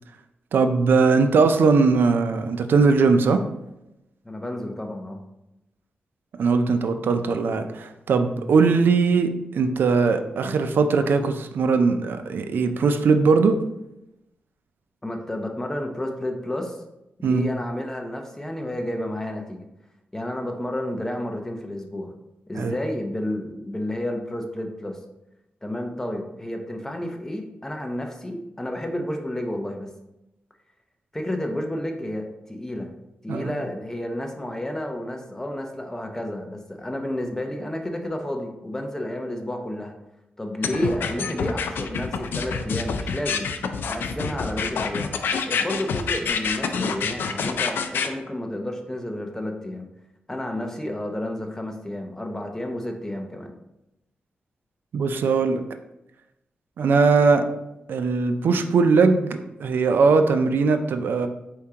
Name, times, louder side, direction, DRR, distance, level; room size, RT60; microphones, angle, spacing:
voice 1, 0.5-3.4 6.4-13.6 17.2-17.5 22.6-22.7 33.3-33.5 54.9-55.6 56.8-57.4 57.9-61.3, right 4 dB, 75° right, 8 dB, 0.4 m, -20 dB
voice 2, 4.2-5.2 15.0-16.8 17.2-19.7 20.1-22.1 22.5-25.0 25.6-29.9 31.1-32.9 33.2-39.9 40.4-43.5 43.8-45.2 45.5-49.9 50.3-53.6, left 1 dB, 15° left, 3 dB, 0.7 m, -31 dB
sound 1, 40.6-48.1, left 6 dB, 85° left, 0.3 m, -27 dB
4.5 x 3.6 x 2.8 m, 0.90 s
cardioid pair, 85°, 3 cm